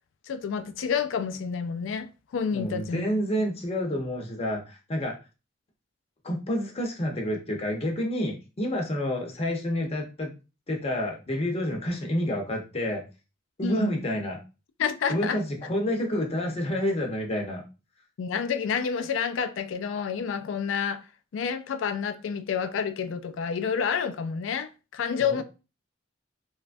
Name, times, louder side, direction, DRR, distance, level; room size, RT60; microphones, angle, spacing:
voice 1, 0.3-3.0 13.6-14.0 14.8-15.4 18.2-21.0 21.3-25.4, left 6 dB, 90° left, 0.3 m, -29 dB
voice 2, 2.5-5.1 6.2-10.3 10.7-13.0 13.6-14.4 15.1-17.6 25.2-25.4, equal, 35° left, 0.7 m, -29 dB
3.0 x 2.3 x 2.5 m
head